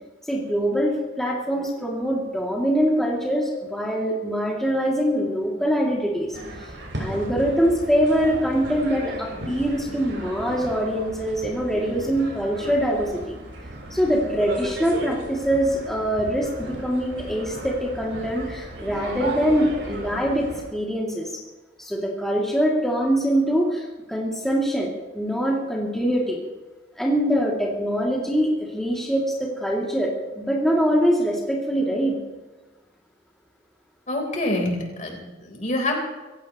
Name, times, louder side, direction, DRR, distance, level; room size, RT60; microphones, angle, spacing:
voice 1, 0.3-6.7 7.0-13.3 13.9-21.3 21.8-26.4 27.0-32.2, equal, ahead, -4 dB, 2.8 m, -23 dB
sound 1, 6.3-20.6, right 1 dB, 85° right, 6.7 m, -35 dB
voice 2, 34.1-36.0, left 1 dB, 40° left, 1 dB, 4.1 m, -26 dB
26.0 x 16.5 x 3.2 m, 1.2 s
head